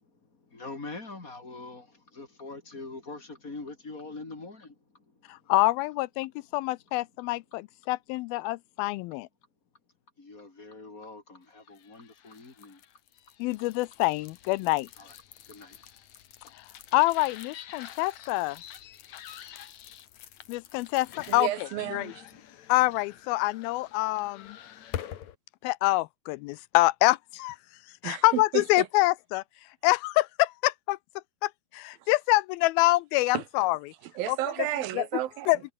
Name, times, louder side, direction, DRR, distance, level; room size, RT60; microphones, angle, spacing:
voice 1, 0.2-5.5 10.2-12.8 15.0-15.2 15.5-15.8, left 3 dB, 25° left, 3.4 m, -44 dB
voice 2, 5.3-9.3 13.4-14.9 16.6-16.7 16.9-18.6 20.5-21.5 21.9-22.1 22.7-24.6 25.6-27.6 28.0-29.4 29.8-31.0 31.4-33.8 34.3-34.4 35.0-35.1 35.5-35.6, left 20 dB, 85° left, 2.4 m, -26 dB
sound 1, 11.7-25.3, left 11 dB, 60° left, 2.4 m, -46 dB
voice 3, 21.3-22.3 28.0-28.9 32.0-32.1 33.3-33.4 34.0-35.6, right 14 dB, 75° right, 2.7 m, -32 dB
omnidirectional pair, 4.3 m